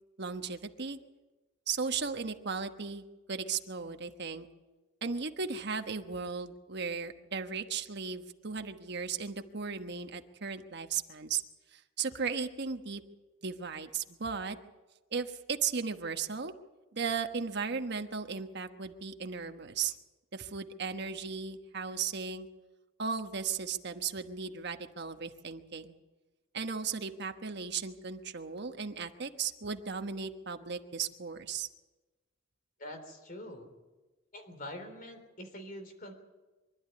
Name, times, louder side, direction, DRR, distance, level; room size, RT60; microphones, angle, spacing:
voice 1, 0.2-1.0 1.7-4.5 5.0-11.4 11.7-13.0 13.4-14.6 15.1-16.5 16.9-19.9 20.3-22.5 23.0-26.0 26.5-31.7, right 5 dB, 60° right, 7 dB, 1.2 m, -36 dB
voice 2, 32.8-33.7 34.3-36.1, left 1 dB, 45° left, 7 dB, 3.6 m, -45 dB
24.5 x 12.0 x 9.5 m, 1.2 s
head